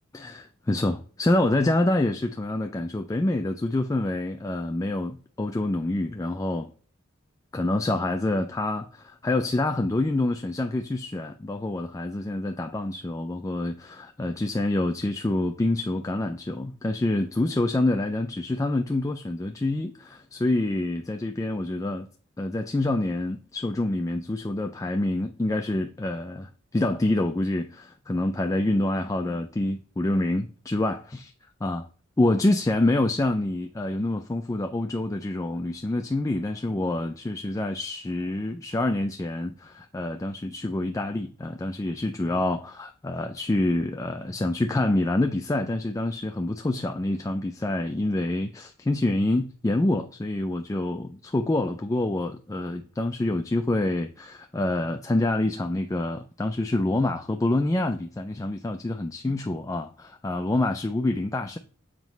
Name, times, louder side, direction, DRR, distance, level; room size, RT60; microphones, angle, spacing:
voice 1, 0.1-6.7 7.5-22.1 22.4-31.3 31.6-31.9 32.2-61.6, left 2 dB, 15° left, 0.4 m, -27 dB
7.4 x 3.0 x 5.2 m
head